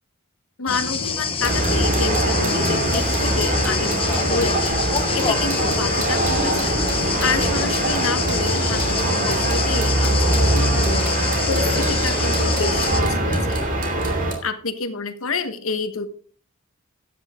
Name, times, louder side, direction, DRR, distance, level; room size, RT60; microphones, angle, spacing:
voice 1, 0.6-13.6 14.4-16.1, left 4 dB, 70° left, 9 dB, 1.3 m, -29 dB
sound 1, 0.7-13.0, left 5 dB, 25° left, 1.2 m, -26 dB
sound 2, 1.4-14.3, right 1 dB, 40° right, 2.7 m, -22 dB
sound 3, 4.7-5.0 6.2-7.0 8.2-9.0 10.2-11.0, right 2 dB, 65° right, 6.3 m, -31 dB
12.0 x 8.9 x 3.7 m, 0.44 s
head